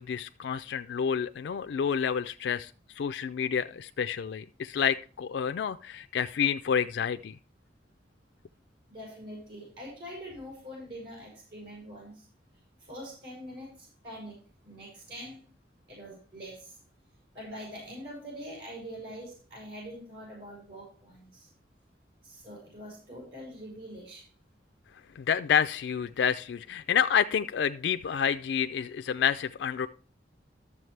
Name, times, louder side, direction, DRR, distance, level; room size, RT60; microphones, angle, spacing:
voice 1, 0.0-2.7 3.0-7.4 25.2-29.9, left 8 dB, 80° left, 0.3 m, -29 dB
voice 2, 8.9-12.2 12.9-14.4 14.6-15.4 15.9-16.8 17.3-21.5 22.2-24.2, equal, 70° right, 5.4 m, -44 dB
12.5 x 7.1 x 3.2 m
head